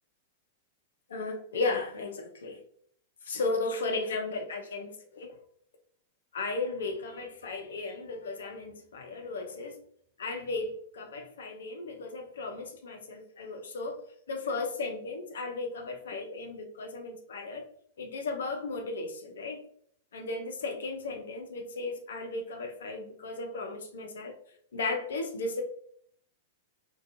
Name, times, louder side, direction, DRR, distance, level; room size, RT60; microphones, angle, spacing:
voice 1, 1.1-2.6 3.2-5.3 6.3-9.8 10.2-14.0 14.3-17.7 18.0-19.6 20.1-24.3 24.7-25.6, left 3 dB, 70° left, 4 dB, 0.5 m, -35 dB
2.4 x 2.2 x 2.6 m, 0.63 s
figure-of-eight pair, 100°, 0 cm